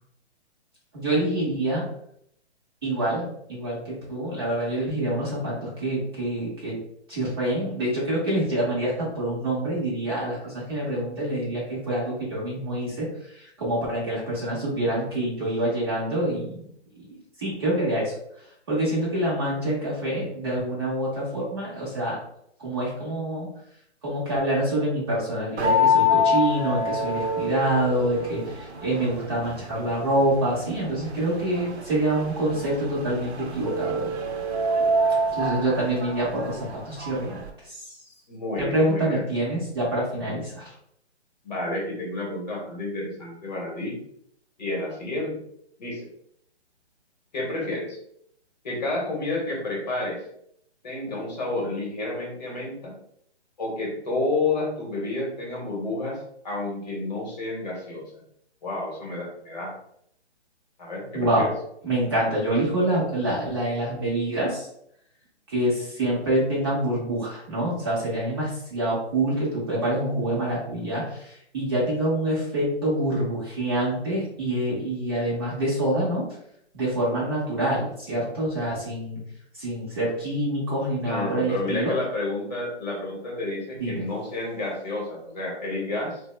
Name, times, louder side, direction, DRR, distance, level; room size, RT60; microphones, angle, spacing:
voice 1, 0.9-1.9 2.8-6.8 7.1-13.1 13.4-16.7 17.4-18.1 18.7-22.2 22.6-23.5 24.0-34.2 35.3-37.4 37.7-37.8 38.6-40.6 61.1-61.5 61.8-64.7 65.5-76.3 76.7-79.2 79.6-82.0 83.8-84.1, right 1 dB, 20° right, -7 dB, 0.7 m, -26 dB
sound 1, 25.6-37.5, left 2 dB, 65° right, 0.7 m, -27 dB
voice 2, 38.3-39.3 40.2-40.3 41.4-44.0 44.6-45.4 45.8-46.1 47.3-48.0 48.6-50.2 50.8-52.9 53.6-56.2 56.4-58.0 58.6-59.7 60.8-61.5 81.0-86.2, left 2 dB, 40° left, -2 dB, 0.9 m, -30 dB
2.9 x 2.1 x 3.1 m, 0.70 s
hypercardioid pair, 160°, 35 cm